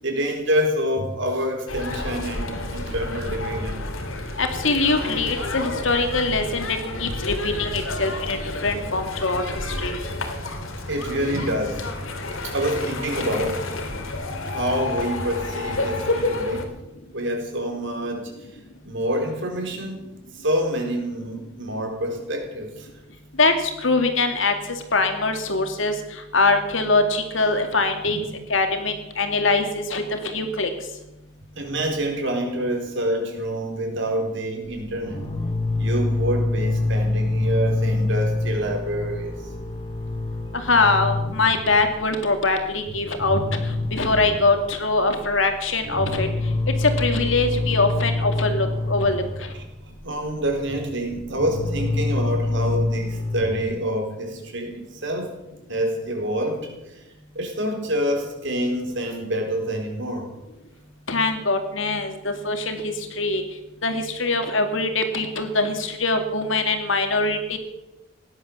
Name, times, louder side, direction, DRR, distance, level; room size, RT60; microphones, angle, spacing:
voice 1, 0.0-3.8 10.9-11.8 12.4-13.6 14.5-16.7 17.1-18.3 18.8-20.1 20.3-22.9 28.0-28.2 31.5-35.3 35.7-39.3 50.0-55.3 55.7-56.7 57.3-60.3, equal, 65° right, 3 dB, 4.4 m, -27 dB
sound 1, 1.7-16.6, left 2 dB, 85° left, 2.7 m, -30 dB
voice 2, 4.4-9.4 9.8-9.9 23.4-28.2 28.5-30.7 40.5-43.4 43.9-46.3 46.8-49.2 61.1-63.4 63.8-67.6, left 3 dB, 65° left, 6 dB, 2.4 m, -23 dB
sound 2, 34.6-42.1 42.3-42.5 42.9-44.8 45.2-53.7, left 2 dB, 25° left, 2.5 m, -26 dB
17.0 x 11.5 x 6.9 m, 0.95 s
head